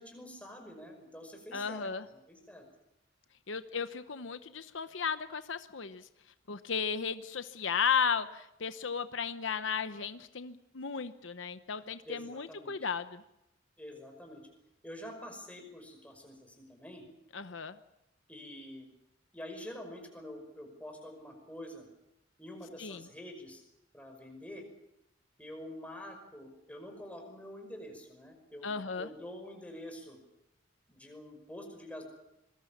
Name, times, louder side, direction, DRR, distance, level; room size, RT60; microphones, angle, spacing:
voice 1, 0.0-1.9 2.3-2.7 12.0-12.7 13.8-14.5 14.8-17.0 18.3-18.9 19.3-21.9 22.4-23.6 23.9-24.7 25.4-30.2 30.9-32.0, left 1 dB, 5° left, 3 dB, 5.6 m, -47 dB
voice 2, 1.5-2.0 3.5-6.1 6.5-13.2 17.3-17.8 22.8-23.0 28.6-29.1, left 6 dB, 75° left, 11 dB, 0.9 m, -35 dB
26.5 x 21.0 x 7.3 m, 0.86 s
head